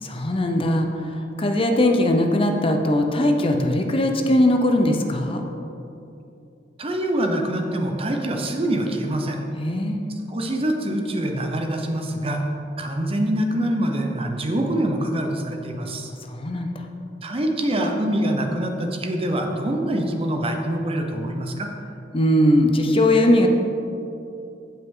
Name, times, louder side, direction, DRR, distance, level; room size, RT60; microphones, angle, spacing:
voice 1, 0.0-5.5 9.6-10.1 16.3-16.7 22.1-23.5, left 1 dB, 30° left, 4 dB, 0.7 m, -20 dB
voice 2, 6.8-9.4 10.3-12.4 12.8-16.1 17.2-21.7, right 1 dB, 30° right, 3 dB, 0.8 m, -25 dB
15.5 x 5.7 x 3.8 m, 2.8 s
head